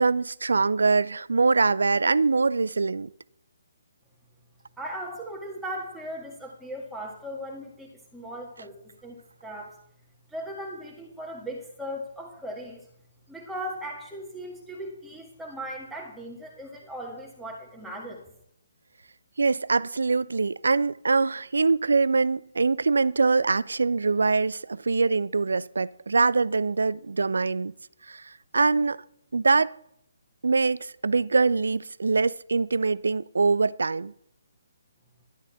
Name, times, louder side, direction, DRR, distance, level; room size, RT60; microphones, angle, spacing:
voice 1, 0.0-3.1 19.4-27.7 28.1-29.0 29.3-29.7 30.4-34.1, right 4 dB, 65° right, 0.4 m, -23 dB
voice 2, 4.8-9.2 9.4-9.8 10.3-12.9 13.3-18.2, equal, ahead, 1.8 m, -38 dB
12.0 x 10.0 x 5.7 m
figure-of-eight pair, 135°, 0 cm